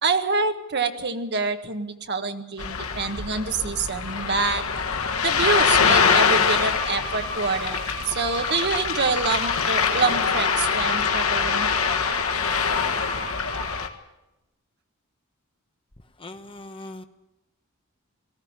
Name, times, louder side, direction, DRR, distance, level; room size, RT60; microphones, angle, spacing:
voice 1, 0.0-4.6 5.2-7.8 8.1-11.7, right 4 dB, 50° right, 7 dB, 1.6 m, -26 dB
Ocean, 2.6-13.9, left 6 dB, 80° left, 1.7 m, -24 dB
sound 1, 3.5-13.3, right 1 dB, ahead, 6.7 m, -50 dB
Bowed string instrument, 6.6-13.8, right 2 dB, 90° right, 7.8 m, -37 dB
voice 2, 16.2-17.0, left 2 dB, 25° left, 7 dB, 1.1 m, -40 dB
18.5 x 15.5 x 9.8 m, 0.96 s
head